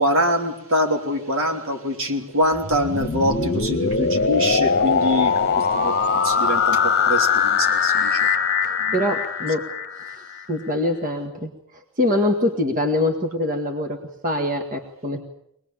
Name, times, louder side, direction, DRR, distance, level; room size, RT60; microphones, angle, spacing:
voice 1, 0.0-6.0 6.2-8.3 8.8-9.0, equal, 65° right, 4 dB, 3.3 m, -24 dB
sound 1, 2.5-10.4, left 5 dB, 50° left, 1.2 m, -21 dB
voice 2, 8.6-9.6 10.0-14.0 14.2-15.2, left 1 dB, 40° right, 4 dB, 1.9 m, -24 dB
23.5 x 20.0 x 8.8 m, 0.78 s
head